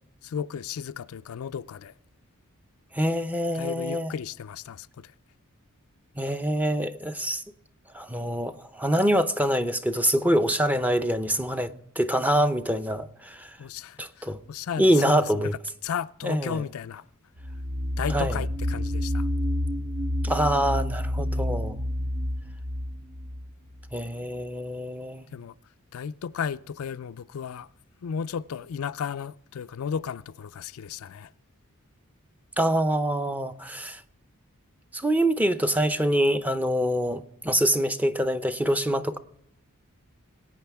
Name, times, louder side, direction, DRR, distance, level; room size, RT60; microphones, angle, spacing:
voice 1, 0.2-1.9 3.5-5.1 13.6-17.0 18.0-19.3 25.3-25.5 25.9-27.7 28.0-31.3, left 7 dB, 70° left, 0.4 m, -34 dB
voice 2, 2.9-4.1 6.2-7.4 7.9-13.6 14.0-14.4 14.8-15.5 16.2-16.6 18.1-18.4 20.2-21.8 23.9-25.3 32.6-34.0 34.9-39.2, equal, 5° right, 0.6 m, -25 dB
sound 1, 17.4-24.0, left 1 dB, 50° right, 0.8 m, -29 dB
21.0 x 9.1 x 3.5 m
head